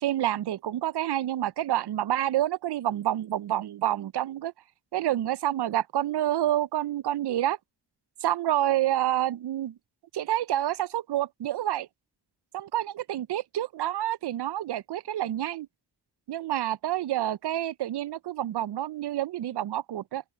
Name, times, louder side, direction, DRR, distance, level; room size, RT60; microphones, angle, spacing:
voice 1, 0.0-4.5 4.9-7.6 8.2-9.7 10.1-11.9 12.5-15.7 16.3-20.2, right 12 dB, 70° right, 0.5 m, -28 dB
open air
wide cardioid pair, 135°, 42 cm